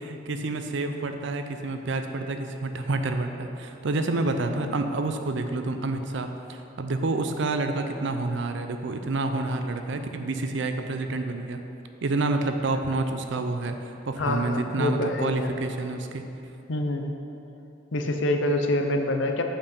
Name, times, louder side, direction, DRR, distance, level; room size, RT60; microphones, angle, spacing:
voice 1, 0.0-11.6 12.0-16.2, right 2 dB, 65° right, 7 dB, 0.5 m, -28 dB
voice 2, 14.2-15.5 16.7-17.1 17.9-19.4, left 1 dB, 65° left, 4 dB, 0.6 m, -26 dB
7.2 x 5.4 x 5.4 m, 2.9 s
head